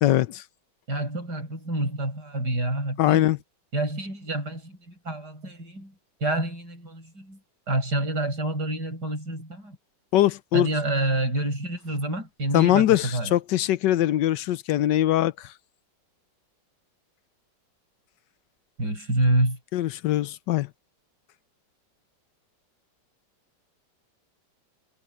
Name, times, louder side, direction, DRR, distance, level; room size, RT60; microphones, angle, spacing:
voice 1, 0.0-0.4 3.0-3.4 10.1-10.7 12.5-15.5 19.7-20.7, left 13 dB, 80° left, 1.3 m, -22 dB
voice 2, 0.9-3.2 3.7-5.9 6.2-7.4 7.7-9.8 10.5-13.3 18.8-19.6, right 1 dB, 65° right, 8.2 m, -28 dB
omnidirectional pair, 1.9 m